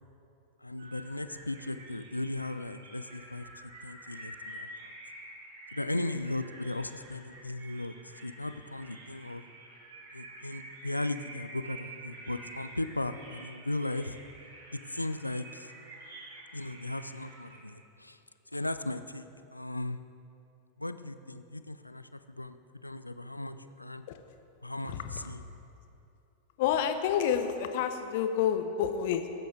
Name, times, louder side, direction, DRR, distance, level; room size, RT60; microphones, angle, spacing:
voice 1, 0.6-3.5 3.8-4.9 5.7-7.9 8.2-9.4 10.1-14.2 14.7-15.7 16.5-18.2 18.5-20.0 20.8-22.6 22.8-24.0 24.6-25.4, left 2 dB, 85° left, 11 dB, 0.4 m, -37 dB
sound 1, 0.8-17.6, right 1 dB, 55° right, 2.6 m, -49 dB
voice 2, 24.8-25.4 26.6-29.3, left 8 dB, 50° left, 8 dB, 0.9 m, -29 dB
18.0 x 9.2 x 3.8 m, 2.7 s
figure-of-eight pair, 90°, 0 cm